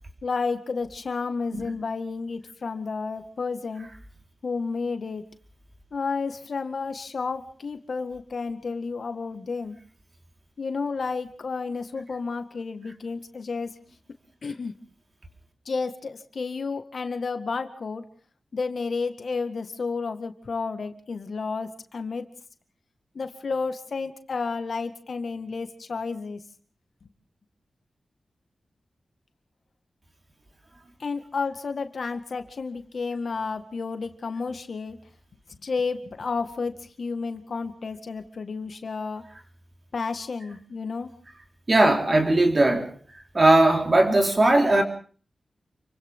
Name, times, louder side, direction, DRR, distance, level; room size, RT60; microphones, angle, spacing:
voice 1, 0.2-3.9 4.4-5.3 5.9-9.8 10.6-13.7 14.4-14.8 15.7-18.0 18.5-22.3 23.1-26.4 27.0-27.1 31.0-35.0 35.5-39.2 39.9-41.1, left 4 dB, 60° left, 8 dB, 1.9 m, -31 dB
voice 2, 41.7-42.9 43.3-44.8, right 2 dB, 35° right, 3 dB, 4.4 m, -19 dB
29.0 x 24.5 x 3.8 m, 0.42 s
wide cardioid pair, 110°, 0 cm